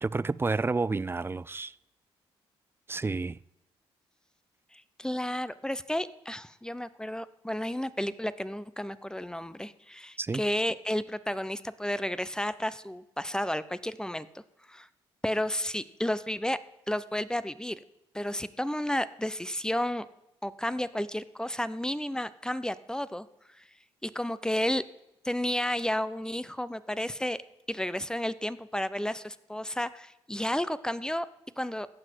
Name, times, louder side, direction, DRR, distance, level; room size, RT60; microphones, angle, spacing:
voice 1, 0.0-1.7 2.9-3.4 10.2-10.4, right 3 dB, 20° right, 0.4 m, -30 dB
voice 2, 4.7-14.4 14.7-14.9 15.2-16.6 16.9-17.8 18.1-20.1 20.4-23.3 23.6-23.7 24.0-24.8 25.2-27.4 27.7-31.3 31.6-31.9, left 1 dB, 5° left, 0.7 m, -32 dB
16.5 x 6.1 x 4.6 m
supercardioid pair, 55°, 12 cm